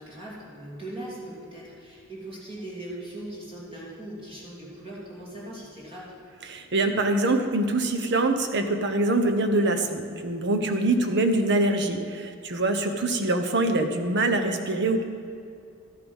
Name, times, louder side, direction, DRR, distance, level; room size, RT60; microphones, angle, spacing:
voice 1, 0.0-6.1 10.9-11.2, right 1 dB, 25° right, -6 dB, 2.9 m, -40 dB
voice 2, 6.5-15.0, right 2 dB, 55° right, 7 dB, 1.1 m, -24 dB
12.5 x 10.5 x 5.5 m, 2.5 s
head